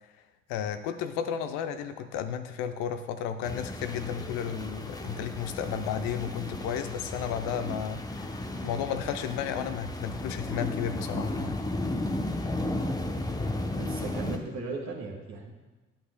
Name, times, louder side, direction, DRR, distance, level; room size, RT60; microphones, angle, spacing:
voice 1, 0.5-11.6, left 8 dB, 70° left, 9 dB, 0.6 m, -33 dB
sound 1, 3.4-14.4, left 1 dB, 10° left, 0.7 m, -34 dB
voice 2, 13.7-15.5, right 3 dB, 55° right, 1 dB, 1.6 m, -36 dB
10.0 x 8.0 x 2.2 m, 1.2 s
hypercardioid pair, 45°, 34 cm